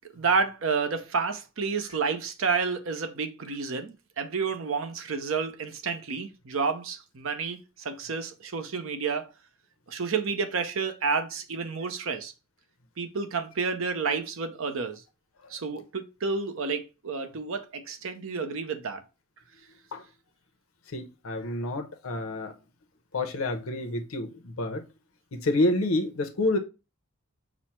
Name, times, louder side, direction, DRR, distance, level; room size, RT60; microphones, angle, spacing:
voice 1, 0.1-9.3 9.9-12.3 13.0-15.0 15.5-19.0, right 5 dB, 70° right, 0.6 m, -30 dB
voice 2, 20.9-22.5 23.1-24.8 25.3-26.6, left 2 dB, 80° left, 0.7 m, -28 dB
6.1 x 2.0 x 4.2 m
head